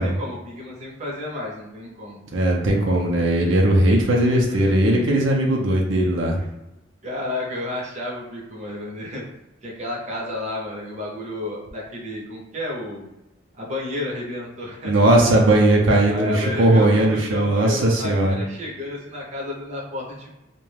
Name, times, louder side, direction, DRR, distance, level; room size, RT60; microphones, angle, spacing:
voice 1, 0.0-2.2 4.1-4.2 4.5-4.8 6.4-6.5 7.0-9.2 9.6-13.1 13.6-14.9 16.1-20.4, left 2 dB, 35° right, -3 dB, 0.6 m, -32 dB
voice 2, 2.3-6.4 14.8-18.4, right 1 dB, 80° right, -1 dB, 0.5 m, -18 dB
2.3 x 2.1 x 3.1 m, 0.96 s
head